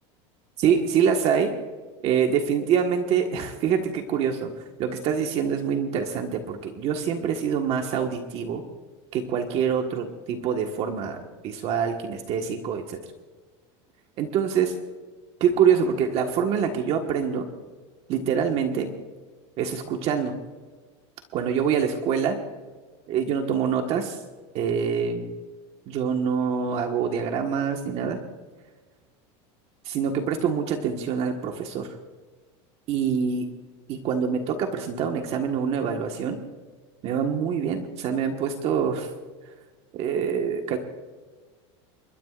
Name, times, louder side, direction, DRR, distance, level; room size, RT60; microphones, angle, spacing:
voice 1, 0.6-1.5 2.0-8.6 9.1-13.0 14.2-14.7 15.4-17.5 18.1-18.9 19.6-20.4 21.3-22.4 23.1-24.2 24.5-25.3 25.9-28.2 29.8-32.0 32.9-33.5 33.9-36.4 37.0-39.1 39.9-40.8, right 7 dB, 45° right, 3 dB, 1.6 m, -25 dB
29.5 x 13.0 x 2.5 m, 1.4 s
supercardioid pair, 145°, 15 cm